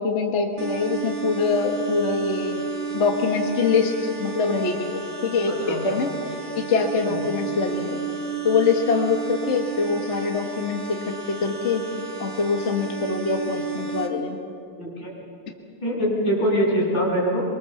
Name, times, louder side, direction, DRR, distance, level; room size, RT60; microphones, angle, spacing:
voice 1, 0.0-2.6 2.9-6.1 6.5-8.0 8.4-11.9 12.2-14.4, left 4 dB, 40° left, 3 dB, 1.6 m, -24 dB
sound 1, 0.6-14.1, right 6 dB, 65° right, 2.5 m, -32 dB
voice 2, 5.5-6.0 7.1-7.2 14.8-15.1 15.8-17.4, equal, 60° left, -6 dB, 7.9 m, -23 dB
24.0 x 23.5 x 7.1 m, 2.4 s
omnidirectional pair, 2.2 m